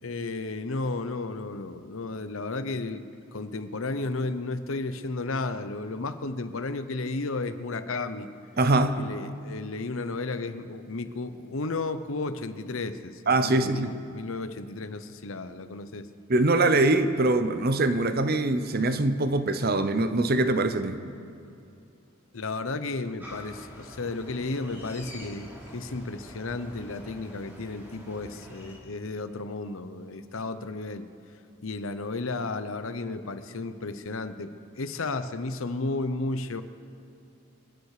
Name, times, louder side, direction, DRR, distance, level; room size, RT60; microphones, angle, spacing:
voice 1, 0.0-3.0 3.3-8.3 9.0-16.1 22.3-31.0 31.6-36.6, left 3 dB, 75° left, 11 dB, 0.9 m, -33 dB
voice 2, 8.6-9.0 13.3-13.9 16.3-21.0, right 2 dB, 45° right, 10 dB, 0.8 m, -23 dB
sound 1, 23.2-28.8, equal, 10° right, 3.7 m, -45 dB
28.5 x 9.6 x 4.9 m, 2.7 s
head